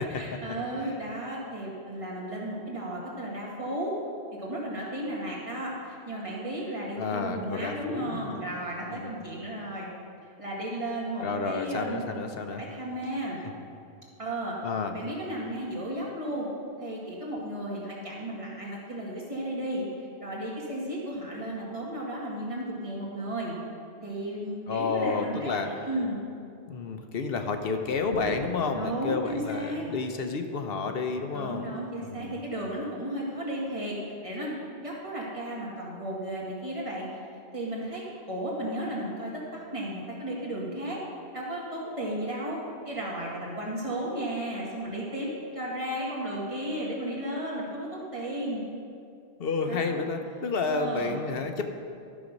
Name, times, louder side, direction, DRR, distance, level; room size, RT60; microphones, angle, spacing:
voice 1, 0.0-3.9 4.4-9.9 10.4-12.1 12.5-13.4 14.2-14.6 14.9-16.5 16.8-23.6 24.0-26.2 28.7-29.8 31.3-34.0 34.2-37.1 37.5-41.0 41.3-42.6 42.9-48.6 49.7-49.8 50.7-51.2, right 1 dB, 30° right, -4 dB, 2.1 m, -34 dB
voice 2, 7.0-8.4 8.9-9.2 11.2-12.6 14.6-14.9 24.7-25.7 26.7-31.7 32.0-32.4 49.4-51.7, left 4 dB, 65° left, 6 dB, 0.9 m, -30 dB
sound 1, 27.1-29.8, right 5 dB, 45° right, 0.6 m, -43 dB
13.0 x 6.2 x 5.2 m, 2.4 s
omnidirectional pair, 1.1 m